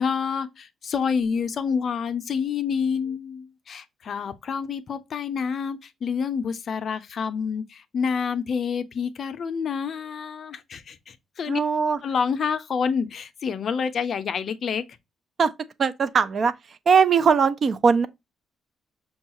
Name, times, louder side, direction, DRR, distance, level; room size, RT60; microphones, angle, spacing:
voice 1, 0.0-11.6 12.0-14.8, left 6 dB, 55° left, 0.5 m, -28 dB
voice 2, 11.5-12.0 15.4-15.5 15.8-16.5 16.9-18.1, right 6 dB, 50° right, 0.4 m, -20 dB
5.3 x 2.3 x 2.8 m
cardioid pair, 90°, 0 cm